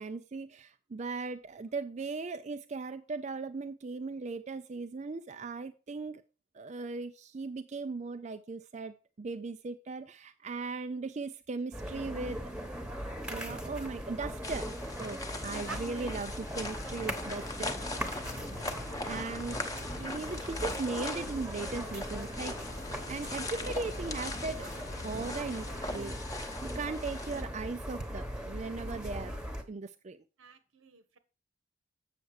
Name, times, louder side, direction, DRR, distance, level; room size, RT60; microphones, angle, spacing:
voice 1, 0.0-6.2 6.5-12.5 13.3-14.7 15.0-18.3 19.1-22.6 23.1-24.7 25.0-29.4 29.7-30.2, right 3 dB, 35° right, 0.4 m, -38 dB
sound 1, 11.7-29.6, equal, 5° right, 1.1 m, -39 dB
sound 2, 14.4-27.4, left 2 dB, 20° left, 0.9 m, -41 dB
voice 2, 15.6-16.1 30.4-31.2, right 4 dB, 80° right, 1.2 m, -47 dB
sound 3, 17.1-25.9, left 5 dB, 50° left, 0.4 m, -50 dB
7.9 x 6.7 x 4.8 m
head